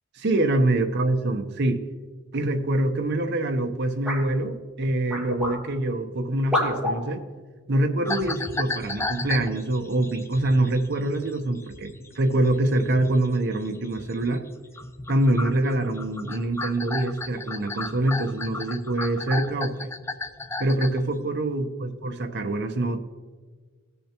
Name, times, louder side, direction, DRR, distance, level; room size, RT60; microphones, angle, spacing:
voice 1, 0.2-1.8 2.3-7.2 7.7-14.4 15.1-19.9 20.6-23.0, right 1 dB, 55° right, 6 dB, 0.8 m, -25 dB
sound 1, 4.0-4.3 5.1-5.6 6.5-7.0 8.1-8.2 9.0-9.2, left 1 dB, 5° right, 2.1 m, -27 dB
sound 2, 8.0-14.5 14.7-21.1, left 3 dB, 10° left, 0.4 m, -35 dB
18.0 x 6.8 x 2.9 m, 1.4 s
head